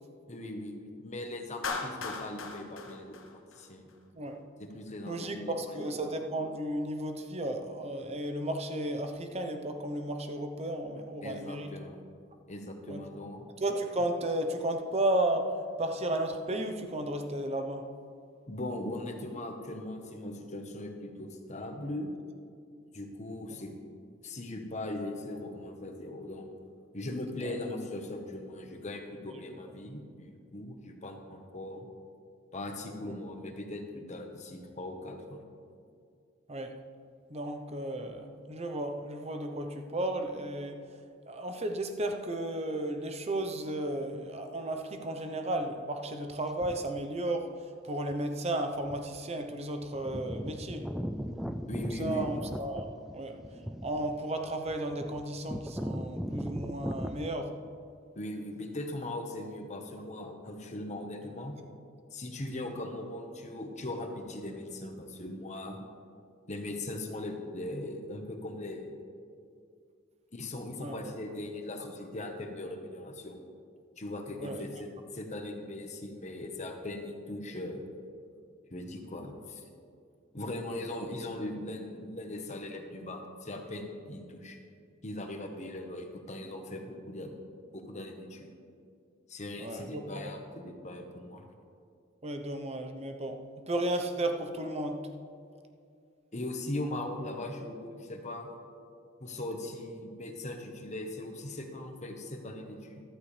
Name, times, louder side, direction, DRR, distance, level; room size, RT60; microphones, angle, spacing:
voice 1, 0.3-3.9 4.6-5.8 11.2-12.0 12.5-13.5 18.5-22.1 22.9-23.7 24.2-26.5 26.9-31.9 32.5-35.4 51.6-52.4 58.1-61.7 62.1-65.8 66.5-69.0 70.3-73.4 74.0-77.9 78.7-79.6 80.3-84.6 85.0-87.3 87.7-88.5 89.3-91.5 96.3-98.5 99.2-103.0, left 1 dB, 35° left, 4 dB, 1.2 m, -39 dB
Clapping, 1.6-3.9, left 4 dB, 85° left, 1.1 m, -38 dB
voice 2, 5.1-11.7 12.9-13.0 13.6-17.9 33.0-33.1 36.5-36.7 37.3-40.8 41.3-47.5 47.8-50.9 51.8-53.4 53.8-57.5 70.8-71.1 74.4-74.7 89.6-90.3 92.2-93.4 93.7-95.1, right 1 dB, 35° right, 5 dB, 0.8 m, -34 dB
sound 1, 46.6-47.0 48.1-48.2 48.8-49.2 49.5-49.6 49.8-57.3, equal, ahead, 0.3 m, -38 dB
14.0 x 12.5 x 3.3 m, 2.3 s
head